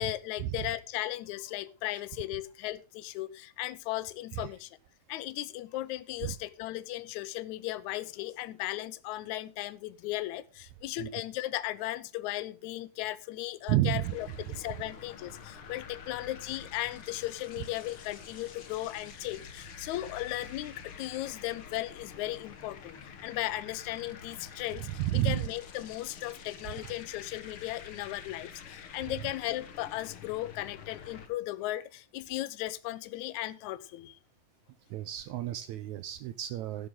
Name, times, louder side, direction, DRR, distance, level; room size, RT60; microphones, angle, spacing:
voice 1, 0.0-4.8 5.1-24.9 25.2-34.2, left 16 dB, 75° left, 2.0 m, -36 dB
voice 2, 13.7-14.2 14.5-14.6 24.8-25.5 26.8-26.9 34.9-36.9, right 14 dB, 75° right, 1.9 m, -31 dB
sound 1, 14.0-31.3, left 6 dB, 50° left, 2.0 m, -48 dB
13.5 x 11.0 x 3.8 m
omnidirectional pair, 3.6 m